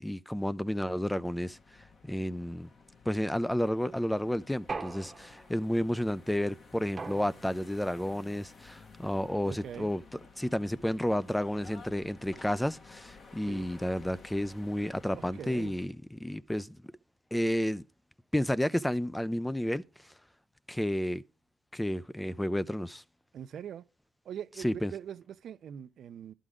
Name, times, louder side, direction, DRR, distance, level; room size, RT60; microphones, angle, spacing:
voice 1, 0.0-2.7 3.1-10.0 10.4-16.8 17.3-17.8 18.3-19.8 20.7-21.2 21.7-23.0 24.6-24.9, left 1 dB, 5° left, 0.4 m, -31 dB
sound 1, 0.7-15.9, left 4 dB, 45° left, 1.3 m, -54 dB
sound 2, 4.7-5.7 7.0-7.8, right 4 dB, 30° right, 0.9 m, -41 dB
voice 2, 9.4-9.9 13.5-13.7 15.1-15.7 23.3-23.8 24.2-26.3, right 9 dB, 65° right, 0.5 m, -42 dB
11.0 x 3.7 x 4.9 m
cardioid pair, 90°, 0 cm